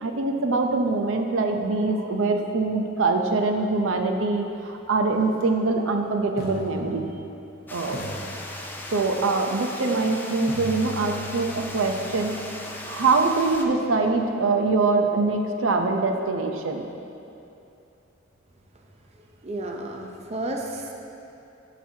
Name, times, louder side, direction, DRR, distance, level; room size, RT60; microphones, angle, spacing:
voice 1, 0.0-7.1 7.7-8.0 8.9-12.4 12.6-16.8, right 3 dB, 85° right, 4 dB, 0.6 m, -24 dB
sound 1, 5.3-5.4 6.4-7.5 7.9-9.2 10.5-14.4, equal, 50° left, 1.0 m, -40 dB
Water, 7.7-13.7, left 1 dB, 10° left, 0.5 m, -38 dB
voice 2, 19.4-20.9, right 1 dB, 35° right, 1 dB, 0.6 m, -32 dB
10.0 x 6.0 x 2.8 m, 2.8 s
head